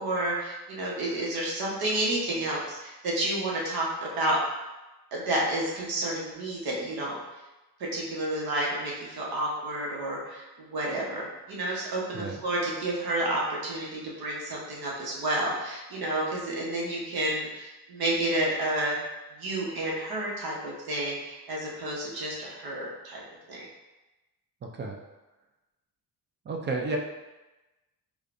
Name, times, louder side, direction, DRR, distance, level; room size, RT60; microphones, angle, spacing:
voice 1, 0.0-4.4 5.1-7.2 7.8-19.0 19.3-23.2 23.5-23.6, right 1 dB, 70° right, -4 dB, 1.1 m, -30 dB
voice 2, 26.5-27.0, right 3 dB, 30° right, 2 dB, 0.4 m, -31 dB
5.0 x 2.3 x 2.5 m, 1.1 s
cardioid pair, 160°, 37 cm